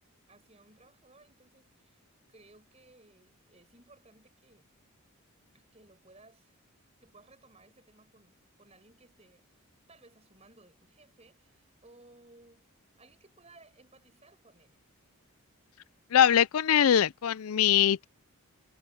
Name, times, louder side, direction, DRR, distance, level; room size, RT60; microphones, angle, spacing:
voice 1, 0.3-2.0 2.3-4.7 5.5-6.6 7.0-12.7 13.0-14.8, right 2 dB, 30° right, 6.9 m, -60 dB
voice 2, 16.1-18.0, left 9 dB, 70° left, 0.4 m, -22 dB
head